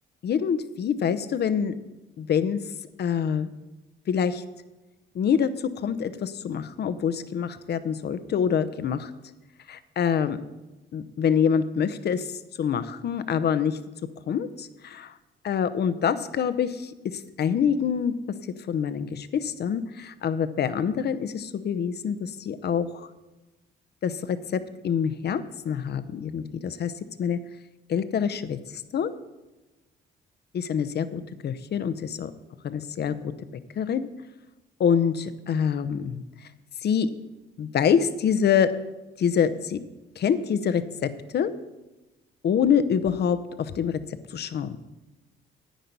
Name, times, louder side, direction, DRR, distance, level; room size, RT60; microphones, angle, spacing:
voice 1, 0.2-1.7 2.2-2.6 3.0-3.5 4.1-4.4 5.1-9.1 9.7-10.4 10.9-13.8 14.3-15.1 15.4-18.1 18.7-23.1 24.0-26.9 27.2-27.4 27.9-29.1 30.5-32.3 32.6-33.3 33.8-34.1 34.8-36.5 36.8-37.1 37.6-38.7 39.2-39.8 40.2-41.5 42.4-44.0 44.3-44.8, left 7 dB, 55° left, 13 dB, 0.8 m, -26 dB
10.0 x 9.1 x 5.4 m, 1.1 s
cardioid pair, 90°, 20 cm